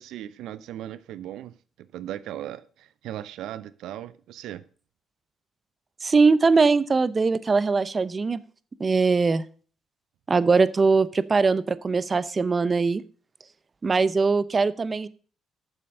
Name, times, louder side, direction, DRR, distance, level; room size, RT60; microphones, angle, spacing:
voice 1, 0.0-4.6, right 12 dB, 85° right, 17 dB, 0.5 m, -38 dB
voice 2, 6.0-8.4 8.8-9.4 10.3-13.0 13.8-15.1, right 4 dB, 35° right, 17 dB, 0.7 m, -21 dB
8.8 x 6.9 x 6.5 m, 0.41 s
cardioid pair, 90°, 0 cm